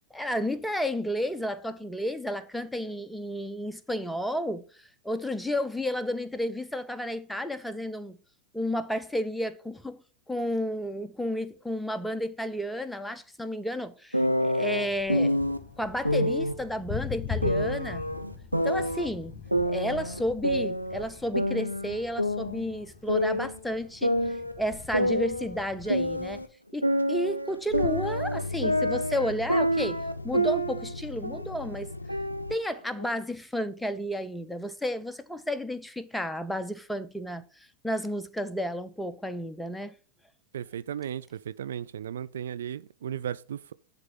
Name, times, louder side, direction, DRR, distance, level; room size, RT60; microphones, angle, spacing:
voice 1, 0.1-4.6 5.0-8.2 8.5-10.0 10.3-15.4 15.8-18.0 18.6-19.3 19.6-24.1 24.6-26.4 26.7-31.9 32.5-37.4 37.8-39.9, equal, 5° left, 0.6 m, -32 dB
sound 1, 14.1-15.6 16.0-16.6 17.4-19.1 19.5-21.1 21.3-23.6 24.0-26.5 26.8-30.9 31.2-31.6 32.1-33.1, equal, 90° right, 0.7 m, -27 dB
Thunder, 14.8-26.5, left 7 dB, 25° left, 1.9 m, -42 dB
sound 2, 27.0-32.5, left 2 dB, 80° left, 0.4 m, -37 dB
voice 2, 40.5-43.7, right 9 dB, 65° right, 0.3 m, -35 dB
10.5 x 3.6 x 5.6 m
figure-of-eight pair, 90°, 0 cm